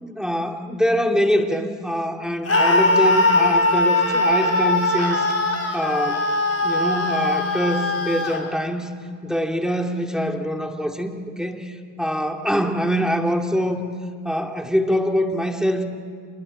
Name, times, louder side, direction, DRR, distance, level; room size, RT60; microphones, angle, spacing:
voice 1, 0.0-5.3 5.7-6.2 6.6-8.9 9.2-11.7 12.0-13.8 14.2-15.8, equal, ahead, 3 dB, 2.5 m, -24 dB
Screaming, 2.5-8.4, left 2 dB, 30° left, 4.4 m, -20 dB
26.5 x 21.0 x 7.7 m, 2.2 s
supercardioid pair, 60°, 45 cm